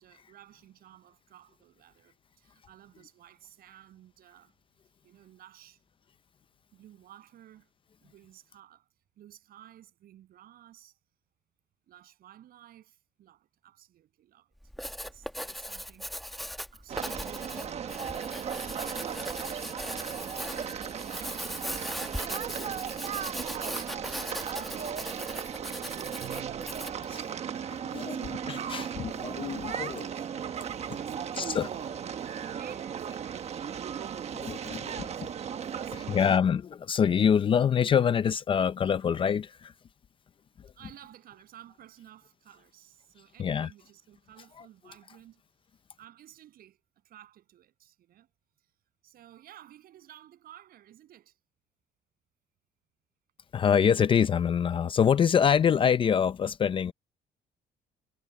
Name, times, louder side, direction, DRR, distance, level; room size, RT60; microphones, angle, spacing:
voice 1, 0.0-4.5 5.0-5.8 6.7-7.7 8.0-8.9 9.2-11.0 11.9-14.5 14.9-18.0 21.0-21.5 21.8-22.8 23.7-25.3 26.2-31.9 32.2-33.9 34.3-35.4 35.7-36.3 40.7-45.4 45.7-46.8 47.0-48.3 48.6-48.7 49.0-51.4, right 12 dB, 65° right, 7.6 m, -55 dB
Writing, 14.6-27.1, equal, ahead, 1.1 m, -39 dB
sound 1, 16.9-36.4, right 8 dB, 40° right, 1.2 m, -36 dB
Bowed string instrument, 26.2-27.1, right 13 dB, 85° right, 2.5 m, -48 dB
voice 2, 28.5-30.1 31.4-31.7 34.3-35.3 36.1-39.7 43.4-43.7 53.5-56.9, left 7 dB, 30° left, 0.5 m, -25 dB
cardioid pair, 155°, 17 cm